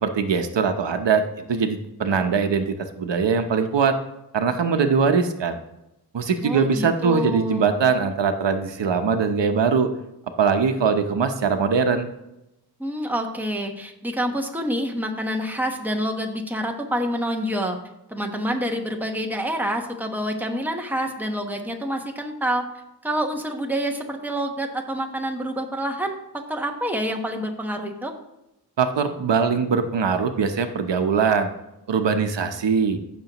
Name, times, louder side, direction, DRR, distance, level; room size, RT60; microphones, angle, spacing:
voice 1, 0.0-4.0 4.3-5.6 6.1-9.9 10.4-12.1 28.8-31.5 31.9-33.0, right 5 dB, 90° right, 7 dB, 0.9 m, -22 dB
voice 2, 6.4-7.7 12.8-17.8 18.1-22.7 23.0-28.1, equal, 5° right, 2 dB, 1.1 m, -27 dB
15.0 x 6.2 x 3.0 m, 0.90 s
wide cardioid pair, 105°, 42 cm